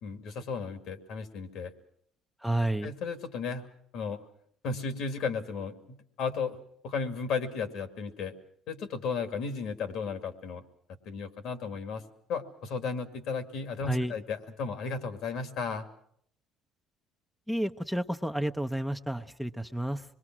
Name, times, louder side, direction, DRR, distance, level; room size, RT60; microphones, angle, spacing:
voice 1, 0.0-1.7 2.6-3.6 3.9-4.2 4.6-6.6 6.8-8.3 8.7-10.6 11.1-12.0 12.3-15.9, left 5 dB, 70° left, 8 dB, 2.4 m, -34 dB
voice 2, 2.4-2.9 13.9-14.1 17.5-20.0, right 1 dB, ahead, 7 dB, 0.8 m, -31 dB
25.5 x 21.5 x 6.1 m, 0.67 s
supercardioid pair, 85°, 0 cm